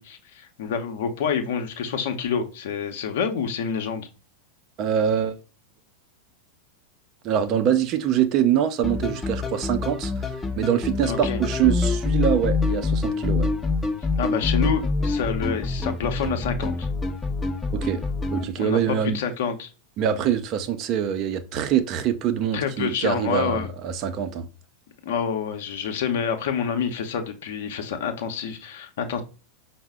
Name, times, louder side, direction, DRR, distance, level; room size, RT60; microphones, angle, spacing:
voice 1, 0.0-4.1 11.1-11.4 14.2-16.9 18.6-19.7 22.5-23.7 25.0-29.2, left 7 dB, 55° left, 0.7 m, -27 dB
voice 2, 4.8-5.4 7.2-10.2 10.6-13.5 17.7-18.0 18.3-19.2 20.0-24.5, right 9 dB, 35° right, 0.5 m, -24 dB
sound 1, 8.8-18.4, left 3 dB, 15° left, 0.6 m, -26 dB
5.4 x 2.1 x 3.5 m
figure-of-eight pair, 90°, 0 cm